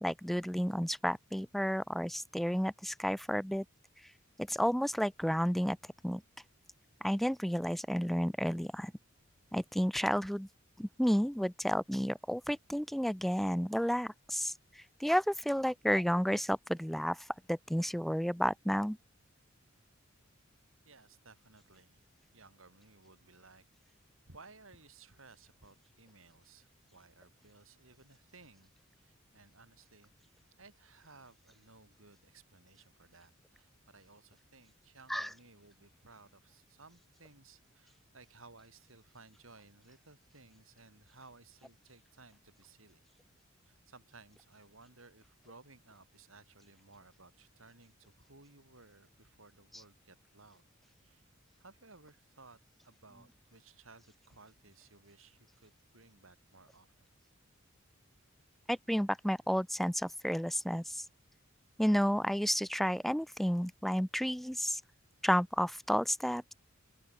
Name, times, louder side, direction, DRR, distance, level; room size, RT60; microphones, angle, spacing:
voice 1, 0.0-3.6 4.4-5.8 6.0-6.2 7.0-8.9 9.5-10.5 10.8-14.5 15.0-17.2 17.5-19.0 35.1-35.3 58.7-61.0 61.8-64.8 65.2-66.5, equal, ahead, 0.5 m, -31 dB
voice 2, 20.8-22.0 22.3-24.0 24.3-28.7 29.0-43.0 43.6-50.6 51.0-51.3 51.6-52.6 52.8-57.1, right 3 dB, 70° right, 6.8 m, -59 dB
open air
head